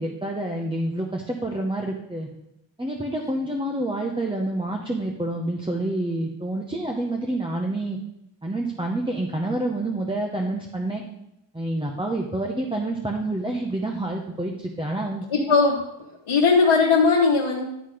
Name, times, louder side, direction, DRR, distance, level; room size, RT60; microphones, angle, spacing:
voice 1, 0.0-2.3 2.8-8.0 8.4-11.0 11.5-15.5, right 1 dB, 10° right, 0 dB, 0.9 m, -28 dB
voice 2, 15.3-15.8 16.3-17.6, left 4 dB, 70° left, -3 dB, 1.3 m, -18 dB
11.5 x 4.1 x 4.9 m, 0.86 s
wide cardioid pair, 85°, 50 cm